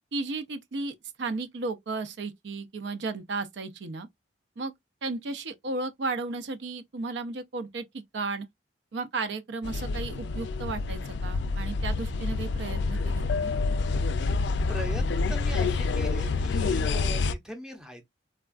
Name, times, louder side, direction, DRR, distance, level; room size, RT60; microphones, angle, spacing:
voice 1, 0.1-4.1 4.6-4.7 5.0-8.5 8.9-13.5, right 3 dB, 75° right, 0.5 m, -34 dB
sound 1, 9.6-17.3, left 4 dB, 70° left, 0.4 m, -28 dB
voice 2, 14.7-18.1, right 1 dB, 5° right, 0.6 m, -40 dB
3.4 x 2.3 x 2.3 m
head